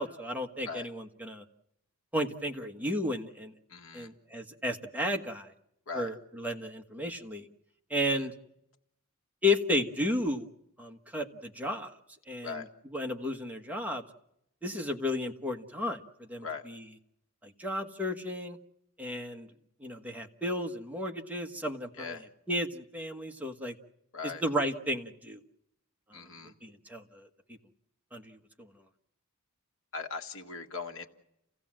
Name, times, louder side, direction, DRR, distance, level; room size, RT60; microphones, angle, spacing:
voice 1, 0.0-1.4 2.1-3.5 3.9-5.5 5.9-7.5 7.9-8.3 9.4-10.5 10.8-11.9 12.3-12.6 12.9-14.0 14.6-16.8 17.4-18.6 19.0-19.5 19.8-22.2 22.5-23.8 24.2-25.4 26.1-27.3 28.1-28.7, left 1 dB, 5° right, 2 dB, 1.4 m, -33 dB
voice 2, 3.7-4.1 5.9-6.1 8.1-8.3 12.4-12.7 16.4-16.7 22.0-22.2 24.1-24.4 26.1-26.5 29.9-31.1, left 5 dB, 70° left, 5 dB, 1.8 m, -39 dB
29.5 x 16.0 x 7.5 m, 0.82 s
head